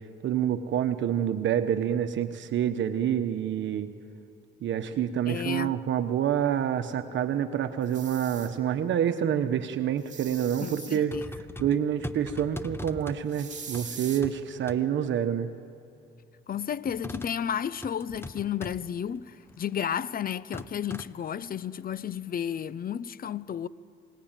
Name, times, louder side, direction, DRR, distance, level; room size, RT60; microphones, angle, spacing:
voice 1, 0.2-3.9 4.6-11.1 11.6-15.5, right 9 dB, 70° right, 1.2 m, -27 dB
voice 2, 5.3-5.7 10.6-11.2 16.5-23.7, left 8 dB, 45° left, 0.7 m, -32 dB
sound 1, 7.8-8.5 10.0-11.0 13.3-14.2, right 6 dB, 40° right, 2.6 m, -42 dB
sound 2, 11.1-13.3 13.7-14.4 14.7-14.8 16.9-17.4 17.8-18.8 19.4-19.7 20.5-21.1, left 2 dB, 10° left, 1.2 m, -40 dB
28.0 x 20.5 x 9.1 m
cardioid pair, 90°, 20 cm